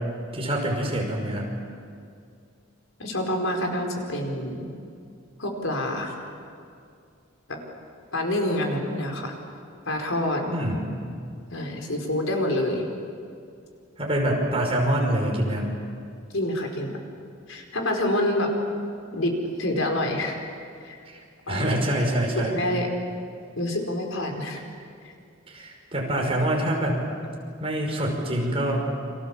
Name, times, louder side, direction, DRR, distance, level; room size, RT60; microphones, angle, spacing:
voice 1, 0.3-1.5 10.5-10.8 14.0-15.7 21.1-22.5 25.5-27.0 27.6-28.9, right 1 dB, 30° right, 0 dB, 5.6 m, -25 dB
voice 2, 3.0-4.7 5.4-6.1 7.5-7.6 8.1-9.3 9.8-10.5 11.5-12.9 16.3-17.0 17.5-18.5 19.1-20.4 20.8-21.1 21.5-21.8 22.3-22.9 23.6-24.6 25.0-25.1, left 1 dB, 80° left, 2 dB, 4.8 m, -27 dB
29.5 x 26.0 x 7.4 m, 2.3 s
head